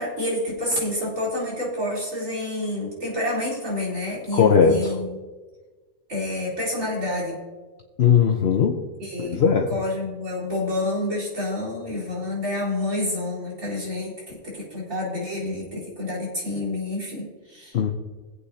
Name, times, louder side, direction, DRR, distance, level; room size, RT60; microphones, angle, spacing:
voice 1, 0.0-5.2 6.1-7.4 9.0-9.4 9.7-17.8, left 1 dB, 85° right, -5 dB, 4.5 m, -28 dB
voice 2, 4.3-4.9 8.0-8.8 9.2-9.7 17.7-17.9, left 6 dB, 55° left, 2 dB, 1.0 m, -18 dB
22.5 x 8.3 x 2.8 m, 1.3 s
omnidirectional pair, 1.3 m